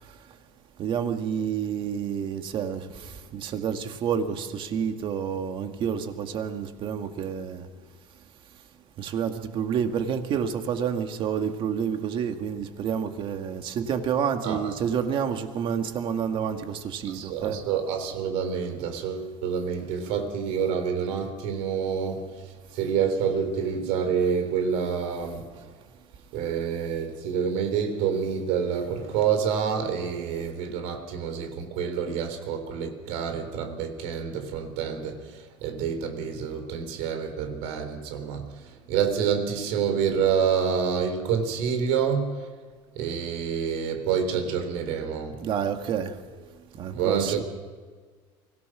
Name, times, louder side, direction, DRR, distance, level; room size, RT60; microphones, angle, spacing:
voice 1, 0.8-7.7 9.0-17.6 45.4-46.1 46.8-47.4, right 7 dB, 50° right, 2.0 m, -29 dB
voice 2, 14.4-14.7 17.0-25.5 26.3-42.5 43.0-45.4 46.9-47.4, right 7 dB, 75° right, 3.9 m, -28 dB
24.5 x 17.5 x 6.2 m
cardioid pair, 130°, 11 cm